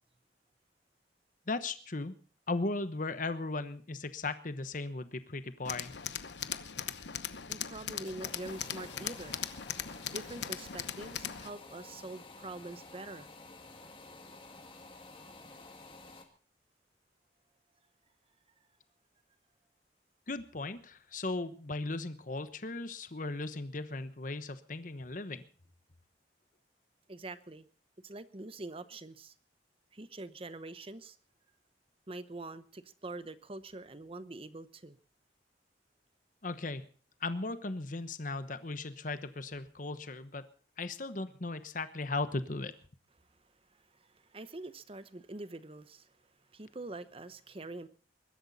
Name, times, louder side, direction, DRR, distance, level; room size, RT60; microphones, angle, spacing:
voice 1, 1.5-2.1 2.5-5.9 20.3-25.4 36.4-36.9 37.2-40.5 40.8-42.7, left 3 dB, 45° left, 12 dB, 1.0 m, -37 dB
Tools, 5.6-11.5, left 9 dB, 75° left, 0.9 m, -39 dB
voice 2, 7.5-9.4 10.0-13.3 27.1-27.7 28.0-29.3 29.9-31.2 32.1-35.0 43.4-47.9, right 2 dB, 30° right, 14 dB, 0.9 m, -45 dB
sound 1, 8.0-16.2, left 3 dB, 30° left, 2.2 m, -51 dB
22.0 x 12.5 x 4.1 m, 0.40 s
head